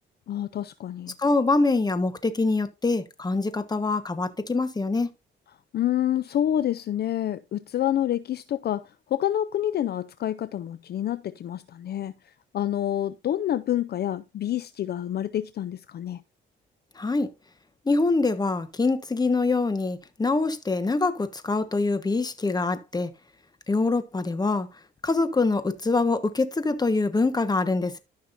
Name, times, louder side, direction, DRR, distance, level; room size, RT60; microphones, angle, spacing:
voice 1, 0.3-1.2 5.7-16.2, left 11 dB, 55° left, 0.5 m, -28 dB
voice 2, 1.2-5.1 17.0-17.3 17.8-23.1 23.7-24.7 25.0-28.0, left 3 dB, 20° left, 1.2 m, -24 dB
13.5 x 5.9 x 2.6 m
cardioid pair, 90°, 20 cm